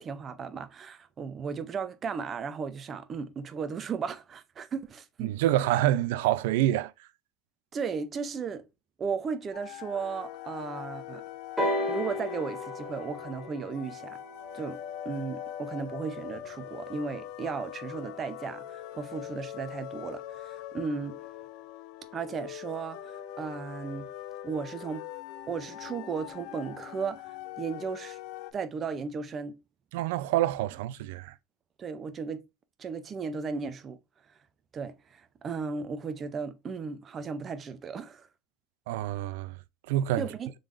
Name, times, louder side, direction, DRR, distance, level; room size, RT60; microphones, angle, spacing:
voice 1, 0.0-5.3 7.7-8.6 9.0-11.2 11.9-14.2 14.5-21.2 22.1-24.1 24.4-25.0 25.5-28.2 28.5-29.5 31.8-32.4 32.8-34.0 34.7-38.3 40.2-40.5, right 5 dB, 30° right, 0.5 m, -35 dB
voice 2, 5.2-6.9 29.9-31.3 38.9-39.6 39.9-40.3, right 13 dB, 85° right, 0.3 m, -27 dB
sound 1, 9.5-28.5, left 12 dB, 70° left, 0.4 m, -42 dB
sound 2, 11.6-15.4 16.3-16.4, left 1 dB, 5° left, 1.3 m, -34 dB
3.7 x 3.2 x 2.5 m
cardioid pair, 140°, 0 cm